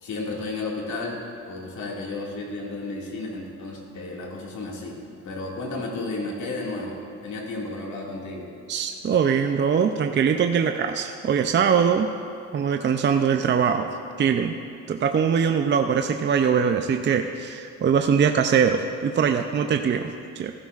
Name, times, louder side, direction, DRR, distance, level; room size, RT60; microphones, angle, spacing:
voice 1, 0.0-5.0 5.2-8.5, left 2 dB, 70° left, -2 dB, 2.2 m, -33 dB
voice 2, 8.7-12.1 12.5-13.9 14.2-14.6 14.9-20.5, right 7 dB, 40° right, 6 dB, 0.5 m, -22 dB
15.0 x 12.5 x 2.5 m, 2.4 s
cardioid pair, 90°, 30 cm